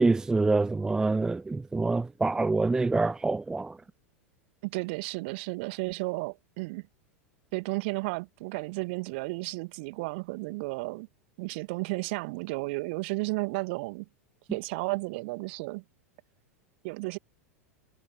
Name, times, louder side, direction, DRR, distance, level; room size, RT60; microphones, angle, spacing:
voice 1, 0.0-3.8, right 3 dB, 10° right, 0.4 m, -26 dB
voice 2, 4.6-6.8 7.5-11.1 11.4-14.1 14.5-15.8 16.8-17.2, right 26 dB, 50° right, 2.2 m, -33 dB
figure-of-eight pair, 90°, 8 cm